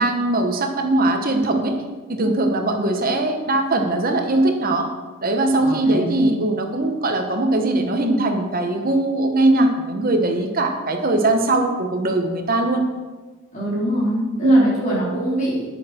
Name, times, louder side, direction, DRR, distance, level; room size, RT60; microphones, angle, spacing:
voice 1, 0.0-1.8 2.1-4.9 5.2-12.8 14.4-14.6, right 2 dB, 40° right, 4 dB, 1.1 m, -20 dB
voice 2, 5.6-6.3 13.5-15.7, equal, 35° left, -6 dB, 4.0 m, -24 dB
9.9 x 9.5 x 4.4 m, 1.3 s
head